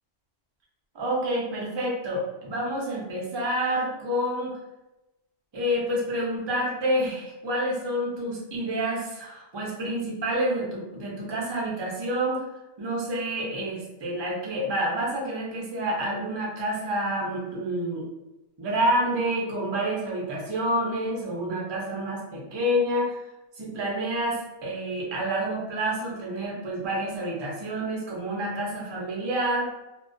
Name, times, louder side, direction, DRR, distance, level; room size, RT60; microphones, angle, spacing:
voice 1, 0.9-4.6 5.5-12.4 12.8-18.0 18.6-23.2 23.6-29.7, right 1 dB, 40° right, -4 dB, 0.4 m, -28 dB
2.2 x 2.2 x 2.5 m, 0.99 s
omnidirectional pair, 1.3 m